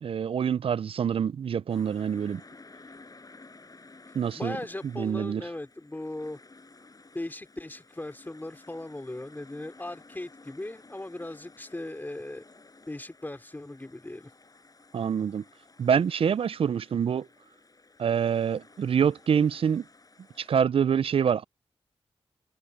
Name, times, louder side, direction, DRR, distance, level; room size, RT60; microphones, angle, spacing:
voice 1, 0.0-2.4 4.1-4.6 5.0-5.4 14.9-15.4 15.8-17.3 18.0-19.8 20.4-21.4, right 7 dB, 70° right, 0.4 m, -26 dB
sound 1, 1.7-20.6, left 3 dB, 40° left, 7.9 m, -54 dB
voice 2, 4.3-6.4 7.1-12.4 12.9-14.3, left 1 dB, 20° left, 3.1 m, -38 dB
wide cardioid pair, 80°, 10 cm